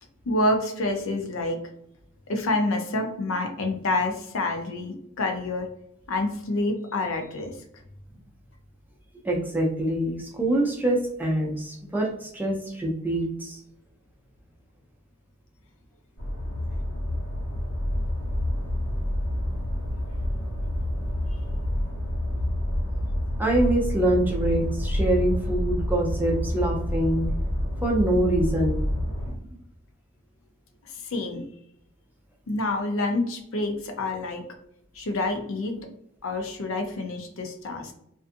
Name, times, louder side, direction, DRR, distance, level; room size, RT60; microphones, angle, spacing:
voice 1, 0.3-1.6 2.3-5.7 6.1-7.5 31.1-31.4 32.5-34.4 35.0-35.8 36.2-37.9, left 2 dB, 65° left, 4 dB, 0.5 m, -27 dB
voice 2, 9.2-13.6 23.4-27.2 27.8-28.8, right 1 dB, 10° right, -1 dB, 0.5 m, -25 dB
sound 1, 16.2-29.3, left 1 dB, 85° left, 1.1 m, -28 dB
2.5 x 2.4 x 2.5 m, 0.75 s
head